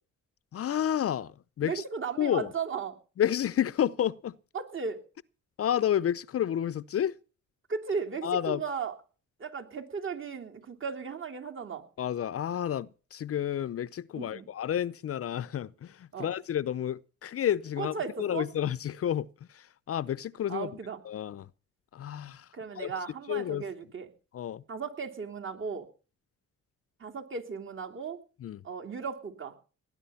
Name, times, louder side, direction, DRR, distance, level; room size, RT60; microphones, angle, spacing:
voice 1, 0.5-1.8 2.2-2.5 3.2-4.4 5.6-7.2 8.2-8.6 12.0-20.7 21.0-21.5 21.9-22.5 22.8-22.9 23.3-23.6 24.3-24.6 28.4-28.6, left 10 dB, 50° left, 0.6 m, -30 dB
voice 2, 1.6-2.9 4.5-5.0 7.7-8.9 9.4-11.8 14.1-14.5 16.1-16.3 17.8-18.5 20.5-21.0 22.5-24.1 24.7-25.9 27.0-28.2 28.6-29.5, right 5 dB, 40° right, 3.1 m, -36 dB
19.0 x 10.5 x 5.7 m
cardioid pair, 90°, 30 cm